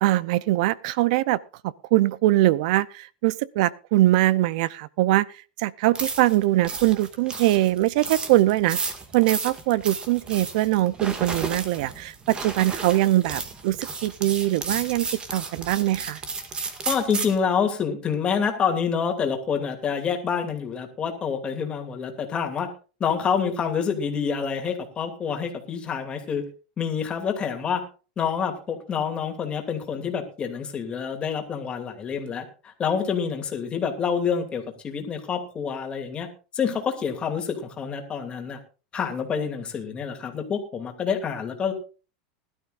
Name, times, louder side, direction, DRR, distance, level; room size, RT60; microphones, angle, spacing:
voice 1, 0.0-1.4 1.6-5.3 5.6-8.8 9.1-15.1 15.3-16.2, right 16 dB, 65° right, 0.6 m, -22 dB
sound 1, 5.9-17.4, right 4 dB, 20° right, 2.1 m, -33 dB
voice 2, 16.9-22.7 23.0-26.4 26.8-27.8 28.2-36.3 36.5-38.6 38.9-41.7, left 6 dB, 25° left, 2.7 m, -27 dB
20.5 x 12.5 x 2.5 m
supercardioid pair, 135°, 4 cm